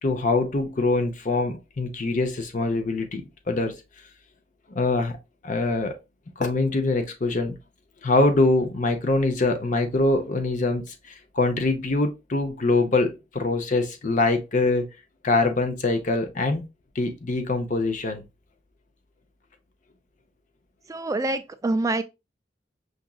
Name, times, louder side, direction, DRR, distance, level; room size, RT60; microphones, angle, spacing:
voice 1, 0.0-3.7 4.7-5.1 5.4-5.9 6.4-7.6 8.0-14.9 15.2-16.6 17.0-18.2, left 2 dB, 45° left, 0.6 m, -24 dB
voice 2, 20.9-22.0, right 2 dB, 20° right, 0.3 m, -25 dB
5.8 x 2.6 x 2.2 m
head